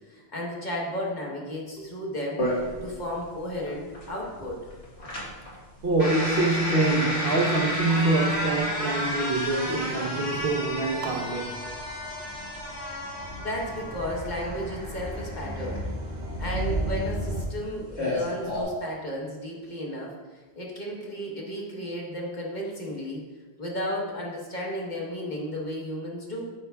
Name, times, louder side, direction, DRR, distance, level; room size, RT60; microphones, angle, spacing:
voice 1, 0.1-2.4 2.8-4.7 13.4-15.8 16.4-20.1 20.6-23.2 23.6-26.4, equal, 45° left, -3 dB, 1.2 m, -33 dB
sound 1, 2.4-18.6, left 1 dB, 80° left, 1.8 m, -32 dB
voice 2, 5.8-11.6, right 2 dB, 60° right, 1 dB, 1.0 m, -25 dB
sound 2, 7.9-17.5, right 1 dB, 85° right, 1.1 m, -36 dB
8.8 x 5.4 x 2.3 m, 1.3 s
omnidirectional pair, 1.1 m